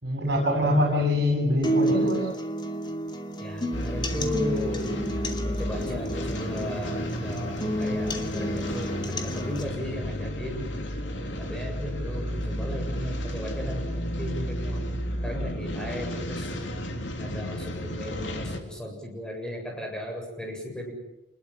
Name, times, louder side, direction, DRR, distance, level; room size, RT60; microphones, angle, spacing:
voice 1, 0.0-2.3, left 1 dB, 60° right, -2 dB, 7.7 m, -24 dB
sound 1, 1.6-9.6, right 1 dB, 25° left, 2.7 m, -30 dB
voice 2, 3.4-4.9 5.4-10.7 11.4-14.8 15.2-16.6 17.2-20.9, left 1 dB, 5° left, 1 dB, 7.5 m, -36 dB
sound 2, 3.7-18.6, equal, 75° left, 3.5 m, -32 dB
28.0 x 21.0 x 7.8 m, 0.93 s
head